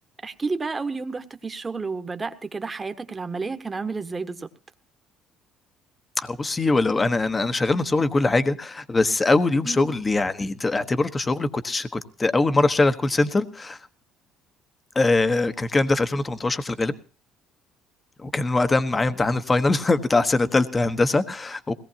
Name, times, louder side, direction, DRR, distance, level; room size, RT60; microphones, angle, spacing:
voice 1, 0.2-4.5 9.6-9.9, right 4 dB, 25° right, 8 dB, 1.4 m, -31 dB
voice 2, 6.2-13.8 14.9-16.9 18.2-21.7, left 3 dB, 25° left, 10 dB, 1.2 m, -22 dB
21.0 x 18.0 x 2.9 m, 0.37 s
supercardioid pair, 80°, 0 cm